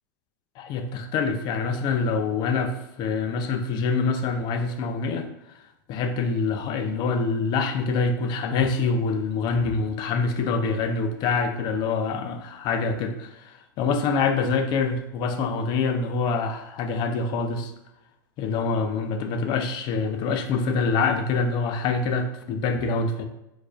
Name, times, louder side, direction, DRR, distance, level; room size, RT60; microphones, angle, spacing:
voice 1, 0.6-5.3 5.9-17.7 18.4-23.2, left 4 dB, 40° left, 7 dB, 0.5 m, -25 dB
4.6 x 2.6 x 2.3 m, 0.90 s
hypercardioid pair, 105°, 11 cm